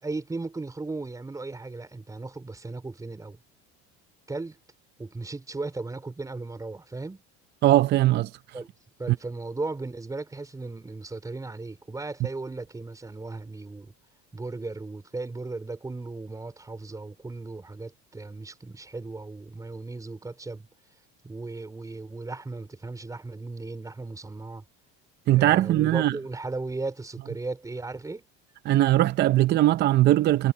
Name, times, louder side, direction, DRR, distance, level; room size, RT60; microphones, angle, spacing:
voice 1, 0.0-3.4 4.3-4.6 5.0-7.2 8.5-8.7 9.0-13.9 14.3-20.7 21.2-24.7 25.3-28.3, right 3 dB, 10° right, 4.2 m, -36 dB
voice 2, 7.6-8.3 25.3-26.1 28.7-30.5, right 14 dB, 35° right, 0.6 m, -20 dB
cardioid pair, 135°, 29 cm